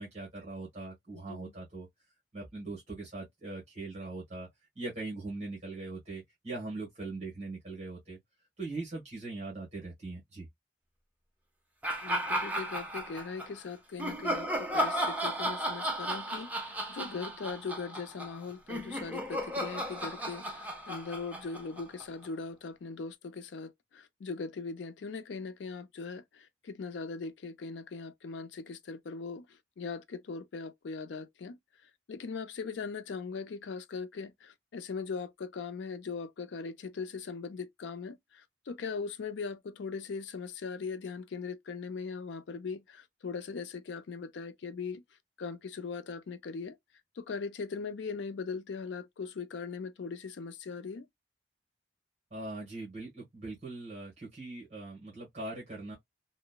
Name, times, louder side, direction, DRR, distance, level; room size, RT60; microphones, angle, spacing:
voice 1, 0.0-1.9 2.3-4.5 4.7-8.2 8.6-10.5 52.3-55.9, right 2 dB, 40° right, 1.2 m, -41 dB
sound 1, 11.8-13.5 14.0-22.3, equal, 10° right, 0.5 m, -34 dB
voice 2, 12.0-29.5 29.8-31.6 32.1-45.0 45.4-46.8 47.2-51.1, left 5 dB, 80° left, 0.4 m, -40 dB
2.9 x 2.1 x 2.2 m
head